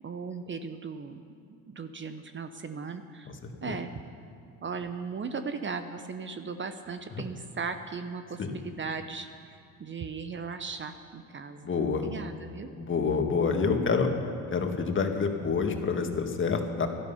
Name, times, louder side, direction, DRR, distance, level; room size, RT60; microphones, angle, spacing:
voice 1, 0.0-1.2 1.7-3.3 3.6-3.9 4.6-12.7, right 5 dB, 30° right, 9 dB, 0.9 m, -37 dB
voice 2, 11.6-12.1 12.8-14.1 14.5-16.9, left 5 dB, 30° left, 4 dB, 1.9 m, -27 dB
16.0 x 12.0 x 5.7 m, 2.4 s
supercardioid pair, 80°, 38 cm